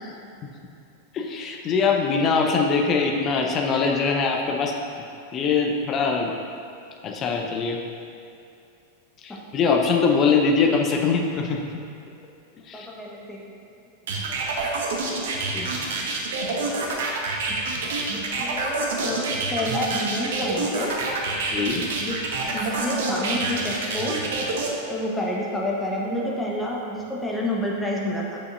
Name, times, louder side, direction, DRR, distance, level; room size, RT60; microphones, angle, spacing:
voice 1, 1.1-5.1 5.3-6.3 7.0-7.8 9.2-11.6 12.7-12.9 15.5-15.7 21.5-21.8, left 5 dB, 30° left, 1 dB, 0.7 m, -22 dB
voice 2, 12.7-13.5 14.4-14.7 15.2-15.7 17.5-17.6 17.9-20.9 22.0-22.2 22.4-24.2 24.9-28.4, left 1 dB, 10° left, -3 dB, 1.1 m, -29 dB
sound 1, 14.1-24.7, right 3 dB, 55° right, 0.9 m, -27 dB
8.0 x 6.8 x 2.5 m, 2.6 s
figure-of-eight pair, 90°, 0 cm